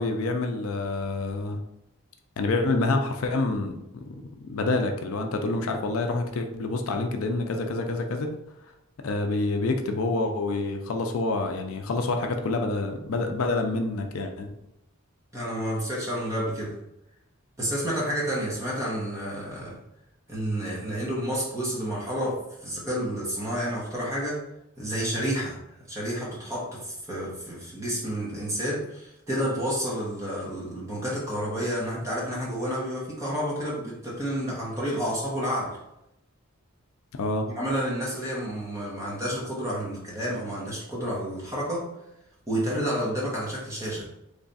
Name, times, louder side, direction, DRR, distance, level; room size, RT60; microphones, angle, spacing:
voice 1, 0.0-1.6 2.4-4.1 4.4-8.3 9.0-14.5 37.1-37.5, left 2 dB, 75° left, 4 dB, 0.4 m, -27 dB
voice 2, 15.3-16.8 17.6-19.8 20.3-24.4 24.8-25.6 25.9-35.8 37.6-41.9 42.5-44.1, equal, 15° right, -5 dB, 0.9 m, -30 dB
3.3 x 2.4 x 3.9 m, 0.85 s
head